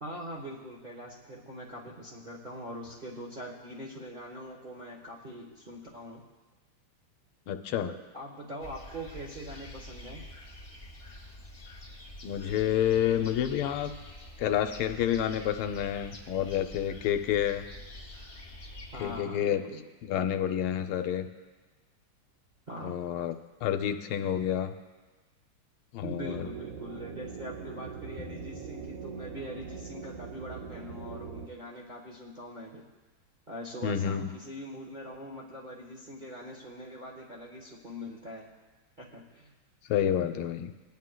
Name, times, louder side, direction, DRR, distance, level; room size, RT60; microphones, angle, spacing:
voice 1, 0.0-6.2 7.7-10.2 18.9-19.8 22.7-23.1 26.0-32.8 33.5-38.5 39.0-39.5, equal, 35° right, -3 dB, 0.8 m, -42 dB
voice 2, 7.5-7.9 12.2-13.9 14.4-17.6 19.0-19.6 20.0-21.3 22.8-23.3 23.6-24.7 25.9-26.5 28.2-28.4 33.8-34.3 39.9-40.7, left 10 dB, 80° left, 7 dB, 1.5 m, -29 dB
sound 1, 8.6-19.2, left 1 dB, 25° left, 1.5 m, -46 dB
sound 2, 26.2-31.5, right 6 dB, 65° right, 0.9 m, -42 dB
20.0 x 9.5 x 2.2 m, 1.3 s
omnidirectional pair, 2.3 m